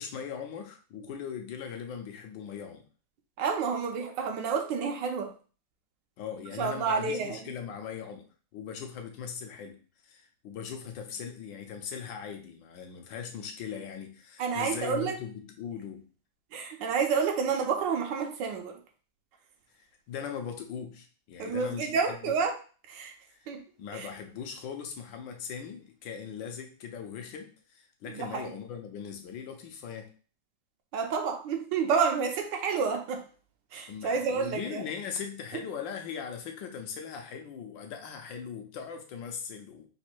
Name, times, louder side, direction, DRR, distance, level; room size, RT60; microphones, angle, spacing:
voice 1, 0.0-2.8 6.2-8.3 8.5-16.1 19.7-22.3 23.3-23.4 23.8-30.1 33.9-39.9, left 7 dB, 80° left, 4 dB, 1.5 m, -40 dB
voice 2, 3.4-5.3 6.6-7.5 14.4-15.2 16.5-18.8 21.4-22.6 22.9-23.1 23.5-23.6 23.9-24.1 28.0-28.5 30.9-33.2 33.7-34.9, right 5 dB, 75° right, 4 dB, 1.4 m, -29 dB
4.1 x 2.6 x 4.4 m, 0.39 s
omnidirectional pair, 2.0 m